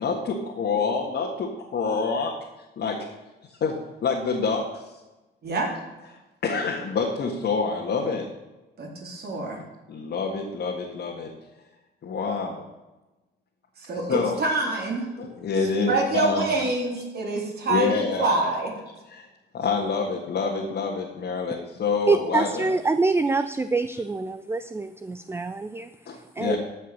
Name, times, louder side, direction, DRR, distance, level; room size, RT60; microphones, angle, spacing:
voice 1, 0.0-2.3 2.8-3.1 3.6-4.9 6.4-8.3 9.9-11.3 12.0-12.6 13.9-14.4 15.2-16.4 17.7-18.5 19.1-19.3 19.5-22.7 26.1-26.6, left 4 dB, 60° left, -1 dB, 1.8 m, -27 dB
voice 2, 5.4-5.7 8.8-9.6 13.8-15.1 15.9-18.7, right 3 dB, 55° right, -1 dB, 3.7 m, -26 dB
voice 3, 22.1-25.9 26.4-26.6, right 3 dB, 10° right, 12 dB, 0.4 m, -25 dB
14.5 x 5.4 x 6.7 m, 1.1 s
cardioid pair, 90°, 20 cm